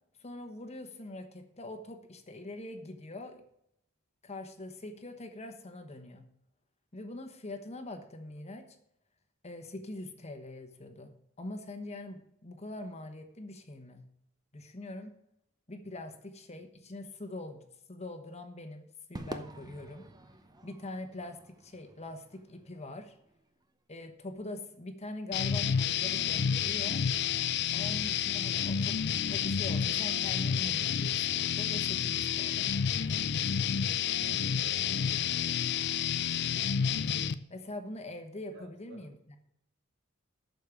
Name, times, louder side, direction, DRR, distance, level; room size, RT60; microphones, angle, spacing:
voice 1, 0.2-3.4 4.2-6.3 6.9-8.8 9.4-14.0 14.5-15.1 15.7-20.0 20.6-23.1 23.9-27.0 27.7-29.0 29.3-32.7 37.5-39.4, left 2 dB, 30° left, 6 dB, 1.1 m, -43 dB
Crowd / Fireworks, 19.2-23.6, right 1 dB, 20° right, 0.7 m, -48 dB
sound 1, 25.3-37.3, left 8 dB, 55° left, 0.5 m, -30 dB
voice 2, 33.9-35.7 38.5-39.1, right 1 dB, 55° right, 3 dB, 2.3 m, -54 dB
8.5 x 6.6 x 6.8 m, 0.78 s
head